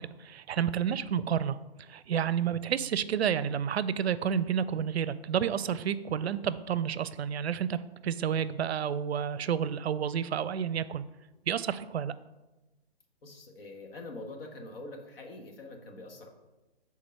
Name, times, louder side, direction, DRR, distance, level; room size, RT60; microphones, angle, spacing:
voice 1, 0.0-11.0 11.5-12.1, right 8 dB, 85° right, 16 dB, 0.5 m, -30 dB
voice 2, 13.2-16.3, left 2 dB, 65° left, 3 dB, 1.4 m, -44 dB
5.2 x 4.0 x 5.6 m, 1.1 s
hypercardioid pair, 140°, 31 cm